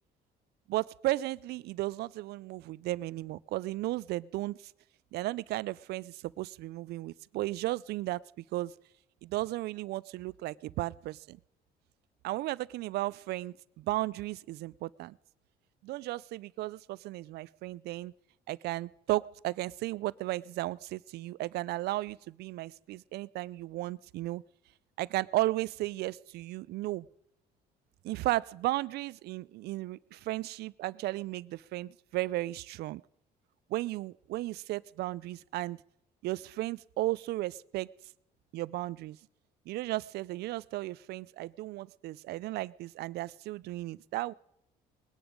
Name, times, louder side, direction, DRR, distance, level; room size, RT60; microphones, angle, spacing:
voice 1, 0.7-4.6 5.1-8.2 8.5-8.7 9.2-11.4 12.2-15.2 15.8-18.1 18.5-24.4 25.0-27.1 28.0-33.0 33.7-35.8 36.2-37.9 38.5-39.2 39.7-44.3, right 17 dB, 75° right, 21 dB, 0.4 m, -34 dB
20.5 x 10.0 x 5.2 m, 0.81 s
cardioid pair, 110°, 17 cm